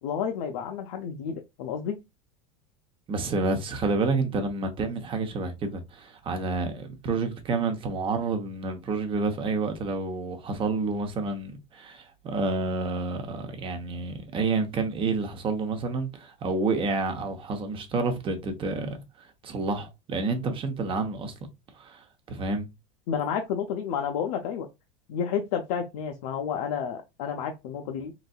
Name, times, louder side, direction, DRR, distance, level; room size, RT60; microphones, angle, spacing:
voice 1, 0.0-2.0 23.1-24.7 25.1-28.1, left 7 dB, 70° left, 0.6 m, -30 dB
voice 2, 3.1-21.3 21.8-22.7, right 3 dB, 30° right, 0.8 m, -29 dB
3.9 x 2.6 x 2.3 m
supercardioid pair, 115°, 18 cm